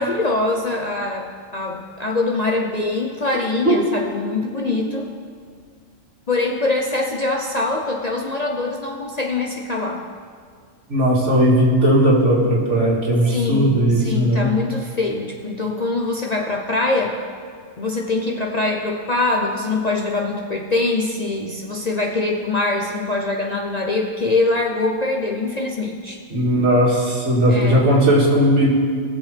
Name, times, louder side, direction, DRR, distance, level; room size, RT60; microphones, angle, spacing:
voice 1, 0.0-5.1 6.3-10.0 13.3-17.2 17.8-26.2 27.5-27.9, left 2 dB, 40° left, 0 dB, 0.7 m, -23 dB
voice 2, 10.9-14.5 26.3-28.7, equal, 65° right, -4 dB, 2.5 m, -17 dB
19.0 x 7.0 x 3.4 m, 2.1 s
omnidirectional pair, 1.3 m